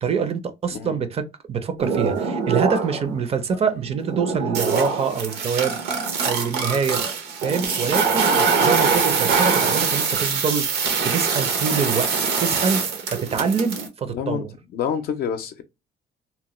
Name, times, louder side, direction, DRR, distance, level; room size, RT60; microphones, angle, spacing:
voice 1, 0.0-5.8 6.2-7.0 7.4-10.7 11.0-12.1 12.4-14.5, right 6 dB, 35° right, 0.5 m, -25 dB
sound 1, 1.8-3.1 3.5-13.9, right 5 dB, 75° right, 0.8 m, -23 dB
voice 2, 14.1-14.4 14.7-15.6, left 8 dB, 65° left, 0.5 m, -28 dB
2.9 x 2.1 x 2.9 m
cardioid pair, 110°, 17 cm